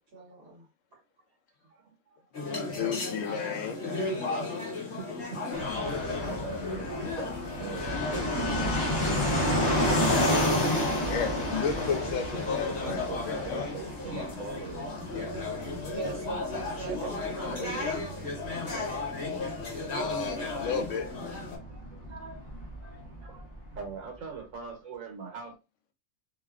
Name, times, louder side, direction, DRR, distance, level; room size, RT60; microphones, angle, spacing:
voice 1, 0.1-0.6 15.9-17.3 21.2-21.4, right 3 dB, 50° right, 1.3 m, -40 dB
voice 2, 1.6-2.6 3.5-3.6 4.9-5.7 6.0-8.4 12.7-14.9 15.2-15.3 16.9-18.1 18.7-20.1 21.7-22.5 22.8-25.5, right 5 dB, 85° right, 1.3 m, -43 dB
sound 1, 2.3-21.6, left 3 dB, 60° left, 1.1 m, -35 dB
voice 3, 2.4-3.8 11.1-13.7 17.4-18.1 20.0-21.1, left 6 dB, 80° left, 0.9 m, -34 dB
Fixed-wing aircraft airplane, 5.5-23.9, left 1 dB, 30° left, 0.5 m, -32 dB
2.8 x 2.2 x 2.3 m
omnidirectional pair, 1.3 m